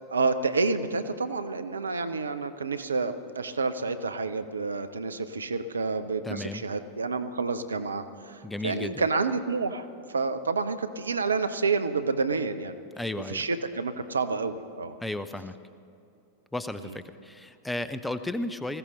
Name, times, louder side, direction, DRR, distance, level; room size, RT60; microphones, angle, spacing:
voice 1, 0.1-12.8 13.3-15.0 16.8-16.9, right 4 dB, 75° right, 10 dB, 0.7 m, -29 dB
voice 2, 6.2-6.6 8.4-9.1 13.0-13.4 15.0-15.5 16.5-18.8, left 2 dB, 5° left, 12 dB, 0.6 m, -34 dB
20.0 x 15.5 x 4.0 m, 2.7 s
figure-of-eight pair, 90°, 0 cm